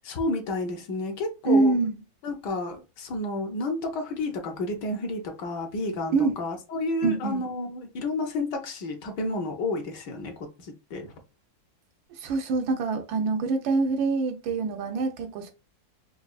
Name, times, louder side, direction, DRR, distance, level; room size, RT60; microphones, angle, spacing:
voice 1, 0.0-1.8 2.2-10.3 10.6-11.1, left 2 dB, 70° left, 1.4 m, -31 dB
voice 2, 1.4-2.0 6.1-6.3 7.0-7.4 12.2-15.5, right 3 dB, 85° right, 1.5 m, -25 dB
4.9 x 2.4 x 2.3 m
omnidirectional pair, 2.1 m